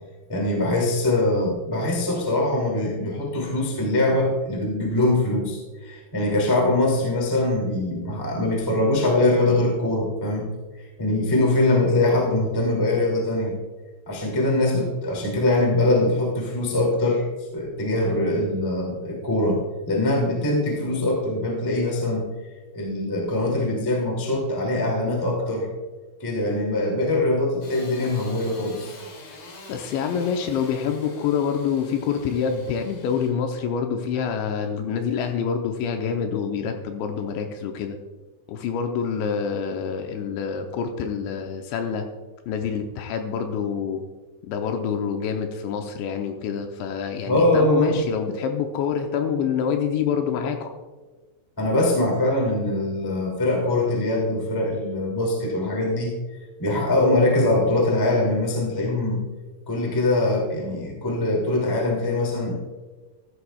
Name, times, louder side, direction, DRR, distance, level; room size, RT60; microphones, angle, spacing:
voice 1, 0.3-10.5 11.0-13.5 14.0-17.2 17.5-19.6 19.9-22.3 22.7-25.7 26.2-28.9 47.3-48.0 51.6-56.1 56.6-59.2 59.7-62.6, left 2 dB, 25° left, -1 dB, 0.4 m, -22 dB
Engine starting / Sawing, 27.6-33.3, left 3 dB, 65° left, 4.4 m, -44 dB
voice 2, 29.7-38.0 38.5-42.1 42.5-44.0 44.4-50.7, left 7 dB, 80° left, 4 dB, 2.8 m, -26 dB
14.5 x 13.0 x 2.3 m, 1.3 s
omnidirectional pair, 5.6 m